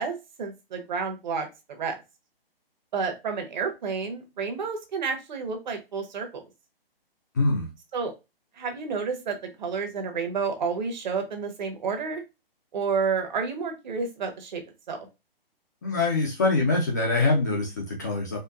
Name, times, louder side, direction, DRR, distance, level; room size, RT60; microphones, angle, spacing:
voice 1, 0.0-1.5 1.8-2.0 2.9-6.3 7.9-8.1 8.6-12.2 12.7-14.6 14.9-15.1, right 5 dB, 50° right, 5 dB, 1.1 m, -30 dB
voice 2, 7.3-7.7 15.8-18.4, left 3 dB, 20° left, -1 dB, 0.4 m, -24 dB
4.4 x 2.5 x 2.4 m, 0.25 s
hypercardioid pair, 145°, 30 cm